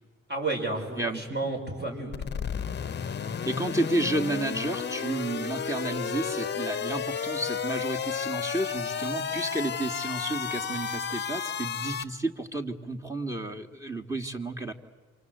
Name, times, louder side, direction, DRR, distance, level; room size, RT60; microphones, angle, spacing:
voice 1, 0.3-2.5, right 2 dB, 35° right, 2 dB, 6.6 m, -32 dB
sound 1, 2.1-12.0, left 7 dB, 35° left, 1.0 m, -32 dB
voice 2, 3.5-14.7, right 2 dB, 10° right, 3 dB, 2.2 m, -31 dB
28.5 x 25.0 x 8.1 m, 1.3 s
cardioid pair, 90°, 30 cm